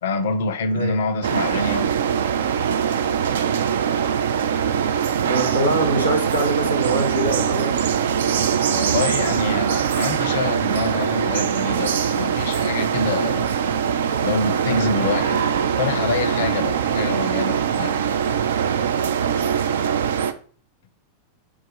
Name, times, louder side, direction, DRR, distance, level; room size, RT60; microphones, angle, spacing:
voice 1, 0.0-1.9 8.7-13.5 14.2-15.4 15.8-18.0, left 4 dB, 60° left, 0.4 m, -26 dB
voice 2, 0.7-1.0 5.3-7.8, right 1 dB, 90° right, 0.9 m, -23 dB
sound 1, 1.2-20.3, right 8 dB, 60° right, 0.3 m, -22 dB
4.6 x 2.4 x 4.2 m
figure-of-eight pair, 90°, 0 cm